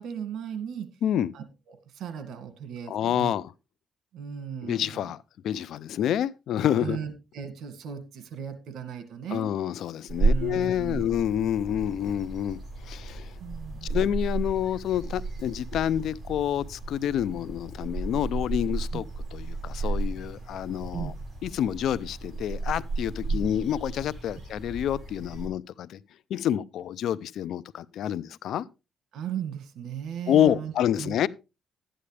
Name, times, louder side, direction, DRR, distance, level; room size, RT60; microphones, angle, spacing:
voice 1, 0.0-0.9 1.3-3.3 4.1-5.1 6.7-9.5 10.2-11.2 13.1-13.9 18.9-19.0 20.9-21.1 23.3-23.4 29.1-30.7 31.0-31.2, right 8 dB, 75° right, 2.0 m, -37 dB
voice 2, 1.0-1.3 2.9-3.5 4.6-5.2 5.4-7.0 9.3-13.3 13.8-19.1 19.3-21.1 21.4-26.0 26.3-28.7 30.3-31.3, left 10 dB, 75° left, 0.5 m, -28 dB
sound 1, 10.1-25.5, right 3 dB, 35° right, 7.3 m, -33 dB
12.0 x 10.0 x 3.3 m
cardioid pair, 90°, 0 cm